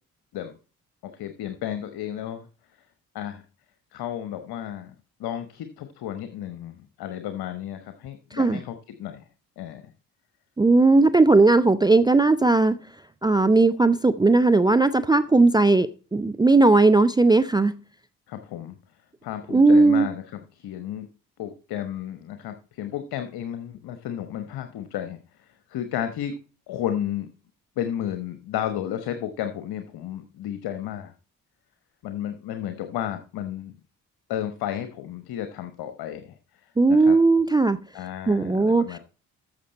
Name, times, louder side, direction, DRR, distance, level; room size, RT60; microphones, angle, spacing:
voice 1, 1.0-2.5 3.1-3.4 3.9-4.9 5.2-9.2 9.6-9.9 18.3-18.8 19.2-21.1 21.4-26.4 26.7-27.3 27.8-31.1 32.0-33.8 34.3-36.3 36.6-37.2 37.9-39.0, left 11 dB, 55° left, 1.1 m, -33 dB
voice 2, 8.3-8.6 10.6-12.8 13.2-17.8 19.5-20.1 36.8-37.8 38.3-39.0, right 3 dB, 10° right, 0.4 m, -18 dB
14.0 x 6.6 x 4.2 m
figure-of-eight pair, 40°, 45 cm